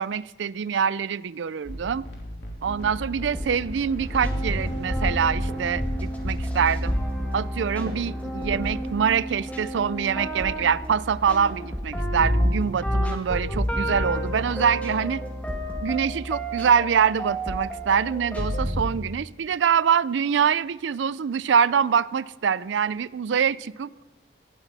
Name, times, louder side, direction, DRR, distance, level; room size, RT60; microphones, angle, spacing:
voice 1, 0.0-2.1 2.6-6.9 7.3-15.2 15.8-23.9, right 7 dB, 85° right, 19 dB, 0.4 m, -24 dB
sound 1, 1.6-7.2, equal, 65° left, 3.1 m, -37 dB
sound 2, 2.7-18.9, equal, 10° left, 1.7 m, -29 dB
sound 3, 3.6-11.8, right 1 dB, 60° right, 1.6 m, -45 dB
18.0 x 12.5 x 4.1 m, 1.1 s
head